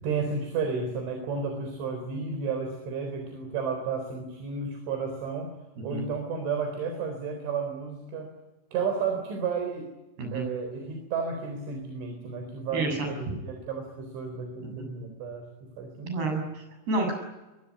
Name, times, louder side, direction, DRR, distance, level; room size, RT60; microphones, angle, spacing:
voice 1, 0.0-5.5 5.8-8.3 8.7-9.9 10.3-16.3, right 5 dB, 75° right, 5 dB, 6.4 m, -32 dB
voice 2, 12.7-13.1 14.7-14.9 16.0-17.1, right 2 dB, 55° right, 4 dB, 9.5 m, -29 dB
24.5 x 23.0 x 9.7 m, 1.1 s
omnidirectional pair, 5.4 m